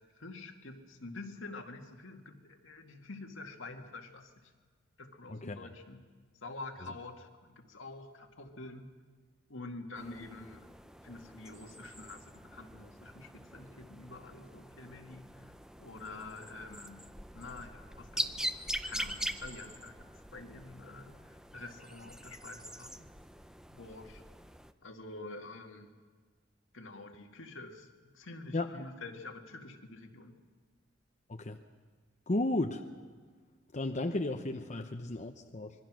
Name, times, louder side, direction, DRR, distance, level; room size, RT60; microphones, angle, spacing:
voice 1, 0.0-4.5 5.0-6.0 6.4-8.9 9.5-10.7 11.0-15.5 15.8-23.1 23.7-24.2 24.8-26.0 26.7-27.9 28.1-30.4, left 2 dB, 75° left, 3 dB, 2.1 m, -47 dB
voice 2, 5.3-5.7 28.5-28.7 31.3-31.6 32.3-32.8 33.7-35.7, left 2 dB, 35° left, 5 dB, 0.8 m, -34 dB
sound 1, 9.9-24.7, right 1 dB, 5° right, 0.6 m, -43 dB
26.0 x 22.0 x 6.3 m, 1.5 s
head